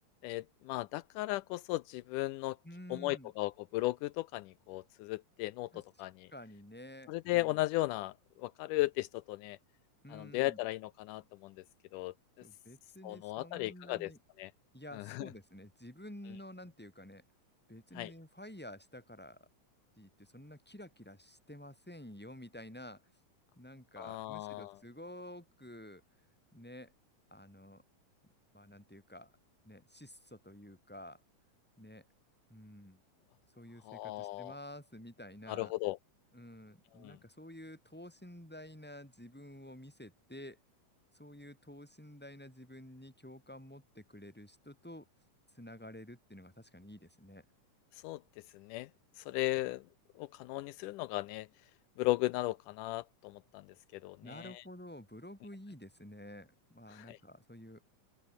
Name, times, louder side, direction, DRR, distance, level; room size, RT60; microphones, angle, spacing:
voice 1, 0.2-2.6 2.9-6.3 7.1-9.6 10.1-11.6 11.9-12.1 13.0-14.1 14.4-14.5 14.9-15.3 18.0-18.1 24.0-24.8 33.8-34.5 35.5-36.0 37.0-37.2 47.9-48.2 48.5-48.9 49.2-49.8 50.2-51.5 52.0-54.6 56.9-57.2, left 18 dB, 85° left, 2.1 m, -36 dB
voice 2, 2.6-3.3 5.7-5.8 6.3-7.6 10.0-10.6 12.4-14.2 14.7-17.2 17.7-19.5 20.0-23.0 23.6-26.0 26.5-26.9 27.3-27.8 28.5-29.3 29.6-31.2 31.8-32.1 32.5-33.0 33.6-35.7 36.3-40.6 41.1-45.1 45.5-47.5 54.2-57.8, left 1 dB, 5° left, 5.5 m, -50 dB
open air
omnidirectional pair, 3.7 m